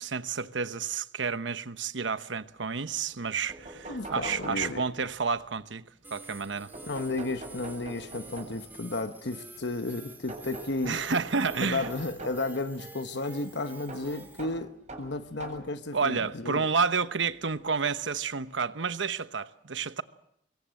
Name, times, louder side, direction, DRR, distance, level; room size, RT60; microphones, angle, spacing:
voice 1, 0.0-5.8 6.1-6.7 10.8-11.9 15.9-20.0, right 5 dB, 90° right, 1.0 m, -30 dB
sound 1, 3.2-3.3 3.5-5.2 6.7-8.8 10.3-12.5 13.9-15.8 16.6-16.7 18.0-18.1 18.5-18.6, right 2 dB, 40° right, 7.5 m, -43 dB
voice 2, 3.8-4.8 6.9-11.0 11.6-14.7 15.0-16.7, left 2 dB, 70° left, 1.1 m, -33 dB
sound 2, 6.0-14.4, right 2 dB, 10° right, 3.4 m, -48 dB
25.5 x 22.5 x 7.7 m
head